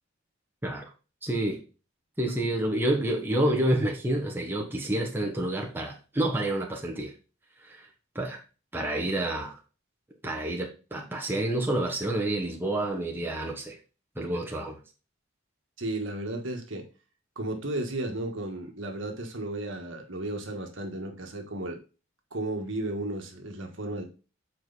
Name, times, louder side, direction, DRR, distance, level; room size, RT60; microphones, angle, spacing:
voice 1, 1.2-1.6 2.2-7.1 7.6-7.9 8.1-8.4 8.7-9.6 10.2-13.8 14.2-14.8, right 1 dB, 10° right, 1.2 m, -28 dB
voice 2, 15.8-16.9 17.3-21.8 22.3-24.0, right 1 dB, 65° right, 1.6 m, -34 dB
7.6 x 4.7 x 4.1 m
head